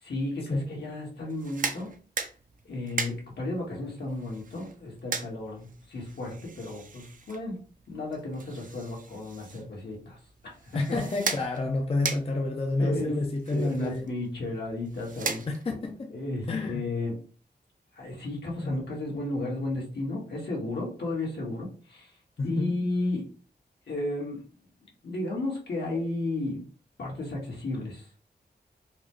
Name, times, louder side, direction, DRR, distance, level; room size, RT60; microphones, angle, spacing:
voice 1, 0.0-1.9 2.6-7.6 7.9-11.0 12.8-13.1 13.5-15.4 16.1-17.2 17.9-22.1 22.4-23.2 23.9-24.4 25.0-26.6 27.0-28.3, left 2 dB, 75° left, 1.6 m, -33 dB
sound 1, 1.3-15.9, right 5 dB, 50° right, 0.5 m, -39 dB
voice 2, 10.7-14.1 15.5-16.1 16.5-16.8 18.6-18.8 19.1-19.2 22.4-22.7, left 2 dB, 35° left, 0.5 m, -29 dB
4.1 x 2.2 x 3.0 m
wide cardioid pair, 90°, 18 cm